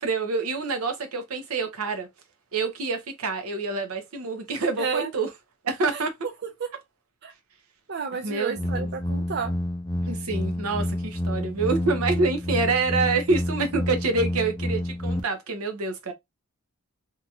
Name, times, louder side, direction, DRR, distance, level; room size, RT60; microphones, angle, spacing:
voice 1, 0.0-2.1 2.5-5.3 5.6-6.1 8.2-8.9 10.0-16.1, right 3 dB, 75° right, 0.7 m, -27 dB
voice 2, 4.8-5.1 5.9-6.0 6.6-6.7 7.2-7.3 7.9-9.5, right 5 dB, 50° right, 0.5 m, -31 dB
sound 1, 8.6-15.2, left 1 dB, 20° left, 0.4 m, -29 dB
2.8 x 2.3 x 2.7 m
head